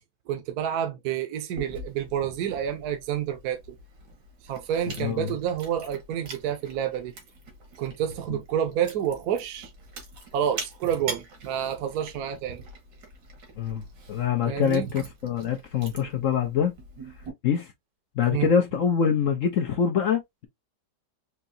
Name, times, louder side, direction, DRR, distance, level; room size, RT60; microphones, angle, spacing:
voice 1, 0.3-3.6 4.4-7.2 7.8-9.7 10.3-12.6 14.5-14.9 18.3-18.5, right 9 dB, 65° right, 1.2 m, -29 dB
Chewing mastication, 1.6-17.3, right 3 dB, 85° right, 2.2 m, -44 dB
voice 2, 13.6-16.7 17.4-17.7 18.2-20.5, left 7 dB, 60° left, 0.9 m, -25 dB
4.7 x 2.9 x 2.6 m
omnidirectional pair, 1.8 m